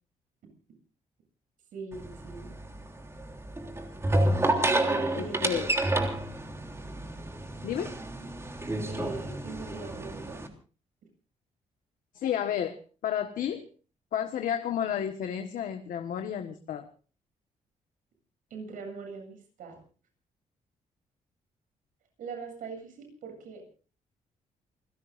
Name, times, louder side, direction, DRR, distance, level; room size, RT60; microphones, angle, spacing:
voice 1, 1.7-2.5 4.8-5.6 8.8-10.4 18.5-19.8 22.2-23.6, right 4 dB, 80° right, 4 dB, 8.0 m, -41 dB
sound 1, 1.9-10.5, right 1 dB, 20° right, 3.3 m, -30 dB
voice 2, 5.1-5.7 7.6-7.9 12.1-12.8 13.0-13.6 14.1-16.9, left 9 dB, 80° left, 6 dB, 1.5 m, -31 dB
29.0 x 16.5 x 2.6 m, 0.38 s
cardioid pair, 105°, 14 cm